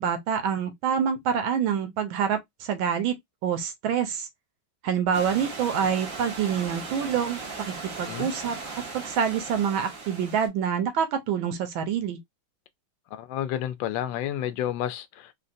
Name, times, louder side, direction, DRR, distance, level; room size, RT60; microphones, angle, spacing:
voice 1, 0.0-3.1 3.4-4.3 4.8-7.4 7.7-8.6 8.9-12.2, right 7 dB, 80° right, 1.5 m, -26 dB
Stream / Liquid, 5.1-10.5, right 4 dB, 50° right, 1.3 m, -38 dB
voice 2, 13.1-15.3, left 11 dB, 75° left, 1.2 m, -30 dB
3.8 x 2.2 x 2.5 m
omnidirectional pair, 2.2 m